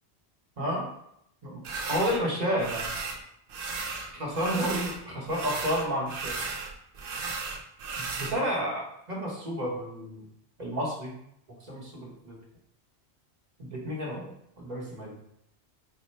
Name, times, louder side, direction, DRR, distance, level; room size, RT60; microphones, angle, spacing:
voice 1, 0.6-0.9 1.4-1.6 1.9-2.9 4.1-6.4 8.0-10.2 10.6-11.1 11.7-12.4 13.6-14.3 14.6-15.2, equal, 40° right, -3 dB, 1.0 m, -31 dB
sound 1, 1.6-2.2 2.6-3.2 3.5-5.0 5.3-8.3, right 4 dB, 60° right, 0.7 m, -35 dB
4.4 x 2.1 x 4.2 m, 0.76 s
omnidirectional pair, 1.1 m